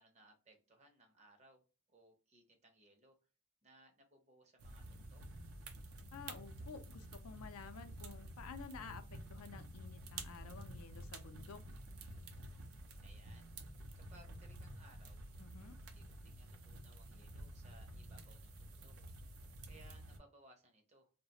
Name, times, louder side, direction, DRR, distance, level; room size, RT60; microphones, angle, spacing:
voice 1, 0.0-1.6 1.9-3.2 3.6-5.2 13.0-13.5 13.9-15.2 15.8-19.0 19.6-21.1, right 2 dB, 30° right, 4 dB, 0.5 m, -65 dB
sound 1, 4.6-20.2, right 1 dB, 80° right, 0.5 m, -51 dB
voice 2, 6.1-11.6 15.4-15.7, left 5 dB, 85° left, 8 dB, 0.4 m, -52 dB
2.4 x 2.0 x 2.7 m, 0.34 s
head